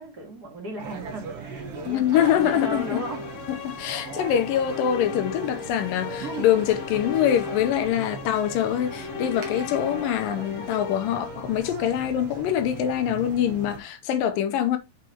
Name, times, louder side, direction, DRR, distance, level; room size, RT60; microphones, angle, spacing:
voice 1, 0.0-3.3, right 2 dB, 35° right, 2.0 m, -37 dB
sound 1, 0.8-13.8, right 6 dB, 55° right, 2.0 m, -39 dB
voice 2, 1.9-3.0 3.6-14.8, left 10 dB, 85° left, 2.6 m, -24 dB
sound 2, 1.9-12.1, left 7 dB, 70° left, 2.0 m, -36 dB
6.6 x 5.0 x 4.3 m
omnidirectional pair, 3.8 m